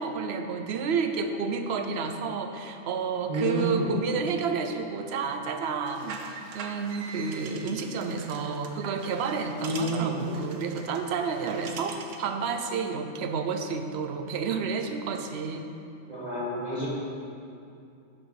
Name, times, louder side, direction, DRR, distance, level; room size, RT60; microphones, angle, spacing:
voice 1, 0.0-15.7, right 5 dB, 60° right, 6 dB, 0.9 m, -30 dB
voice 2, 3.3-3.9 9.6-10.2 16.1-16.9, right 1 dB, 35° right, -7 dB, 1.6 m, -29 dB
sound 1, 5.8-12.3, right 5 dB, 80° right, 1.1 m, -43 dB
11.0 x 6.4 x 4.8 m, 2.6 s
omnidirectional pair, 1.3 m